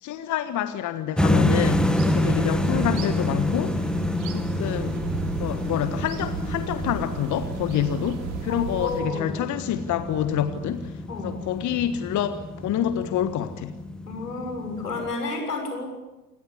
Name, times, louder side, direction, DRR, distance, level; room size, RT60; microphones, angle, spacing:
voice 1, 0.0-3.8 4.3-5.0 5.4-13.7, left 10 dB, 40° left, 11 dB, 1.5 m, -27 dB
sound 1, 1.2-15.1, left 1 dB, ahead, 1.7 m, -28 dB
sound 2, 1.6-9.0, right 6 dB, 60° right, 3.1 m, -36 dB
voice 2, 8.5-9.3 11.1-11.4 14.1-15.9, left 3 dB, 85° left, 3 dB, 6.9 m, -31 dB
28.5 x 18.0 x 9.9 m, 1.1 s
figure-of-eight pair, 75°, 45 cm